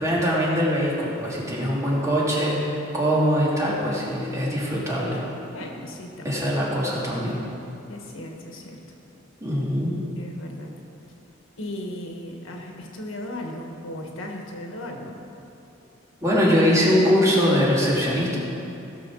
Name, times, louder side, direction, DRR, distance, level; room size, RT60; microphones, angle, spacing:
voice 1, 0.0-5.2 6.2-7.4 9.4-9.9 16.2-18.4, equal, 15° right, -6 dB, 2.8 m, -22 dB
voice 2, 5.5-6.5 7.9-8.8 10.2-10.7 11.6-15.2, left 1 dB, 80° left, 1 dB, 1.7 m, -36 dB
17.0 x 6.6 x 6.4 m, 2.8 s
head